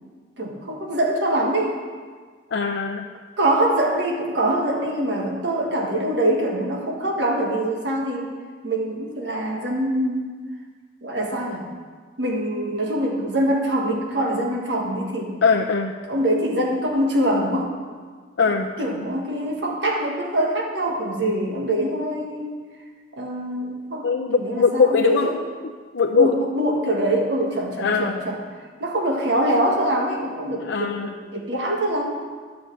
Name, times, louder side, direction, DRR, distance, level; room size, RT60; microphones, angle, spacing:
voice 1, 0.4-1.8 3.4-8.3 8.6-10.3 11.0-11.7 12.2-15.3 16.1-17.7 18.8-22.6 23.2-24.1 24.3-25.3 26.1-28.4 28.8-32.1, right 1 dB, 80° right, -1 dB, 1.5 m, -24 dB
voice 2, 2.5-3.1 15.4-15.9 18.4-18.7 24.0-25.3 25.6-26.3 27.8-28.2 30.6-31.1, left 5 dB, 85° left, 1 dB, 0.6 m, -21 dB
10.5 x 5.3 x 7.5 m, 1.5 s
head